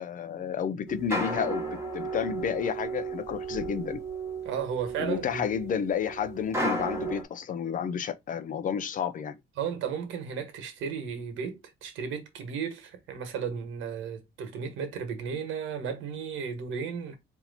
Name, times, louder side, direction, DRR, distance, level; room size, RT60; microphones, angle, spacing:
voice 1, 0.0-4.0 5.0-9.4, left 7 dB, 40° left, 0.6 m, -31 dB
sound 1, 0.9-7.2, right 2 dB, 15° right, 1.2 m, -34 dB
voice 2, 4.4-5.4 9.6-17.1, right 7 dB, 80° right, 1.4 m, -34 dB
4.3 x 2.8 x 4.0 m
cardioid pair, 135°, 20 cm